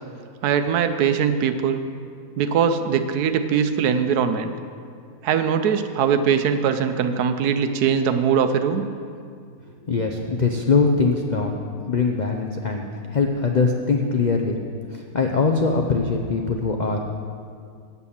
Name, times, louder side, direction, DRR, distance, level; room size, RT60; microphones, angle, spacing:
voice 1, 0.4-1.8 2.4-4.5 5.2-8.8, right 7 dB, 80° right, 9 dB, 1.2 m, -21 dB
voice 2, 9.9-11.6 11.9-12.8 13.1-14.6 14.9-17.0, left 4 dB, 70° left, 2 dB, 0.4 m, -22 dB
8.2 x 8.1 x 7.1 m, 2.2 s
omnidirectional pair, 1.7 m